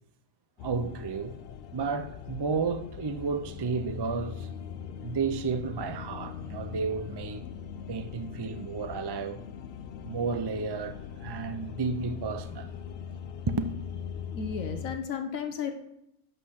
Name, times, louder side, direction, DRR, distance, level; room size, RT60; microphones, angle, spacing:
sound 1, 0.6-15.0, left 8 dB, 65° left, 0.6 m, -41 dB
voice 1, 0.6-1.4 1.7-4.5 5.0-7.4 7.9-9.4 10.0-12.7 13.5-13.7, right 4 dB, 40° right, 0.3 m, -32 dB
voice 2, 14.3-15.7, left 6 dB, 80° left, 1.4 m, -33 dB
11.5 x 4.1 x 6.4 m
omnidirectional pair, 1.4 m